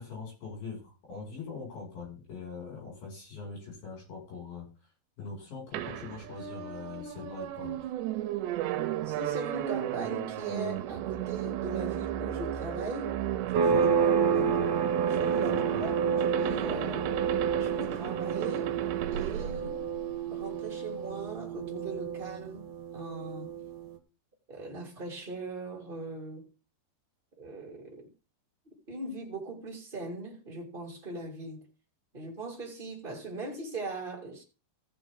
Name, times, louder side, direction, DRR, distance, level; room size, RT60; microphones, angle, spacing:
voice 1, 0.0-4.7 5.2-7.8 13.7-13.9 15.5-15.8, left 5 dB, 50° left, 8.1 m, -42 dB
sound 1, 5.7-20.5, right 12 dB, 80° right, 2.9 m, -34 dB
voice 2, 9.0-13.2 13.5-13.9 14.1-14.6 15.1-17.1 17.6-18.8 19.1-19.9 20.3-23.5 24.5-26.5 27.4-28.1 28.9-31.6 32.1-34.4, right 2 dB, 15° right, 2.3 m, -39 dB
sound 2, 13.5-23.9, right 6 dB, 60° right, 2.6 m, -30 dB
15.5 x 7.6 x 3.9 m
omnidirectional pair, 5.2 m